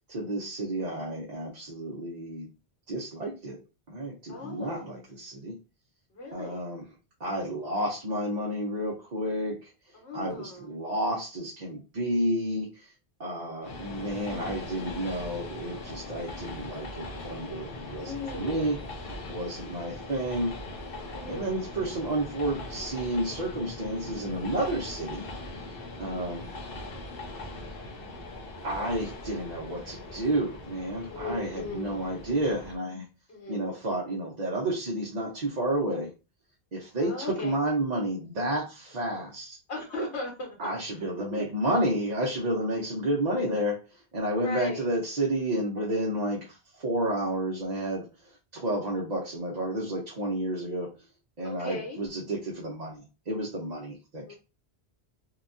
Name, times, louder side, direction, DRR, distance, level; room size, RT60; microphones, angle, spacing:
voice 1, 0.1-2.5 2.9-3.6 3.9-5.5 6.3-6.8 7.2-9.7 10.1-12.9 13.2-18.8 19.3-20.5 21.3-25.3 26.0-26.5 28.6-33.1 33.5-36.1 36.7-39.6 40.6-43.8 44.1-50.9 51.4-54.3, right 1 dB, 45° right, -3 dB, 0.7 m, -31 dB
voice 2, 4.3-4.9 6.1-6.6 9.9-10.8 17.9-18.9 21.1-21.6 31.1-32.1 33.3-33.8 37.0-37.5 39.7-40.6 44.3-44.8 51.4-52.0 54.3-54.4, left 2 dB, 80° left, -2 dB, 1.3 m, -38 dB
Train, 13.6-32.8, left 2 dB, 60° left, 0.8 m, -40 dB
2.8 x 2.2 x 2.5 m, 0.30 s
omnidirectional pair, 1.1 m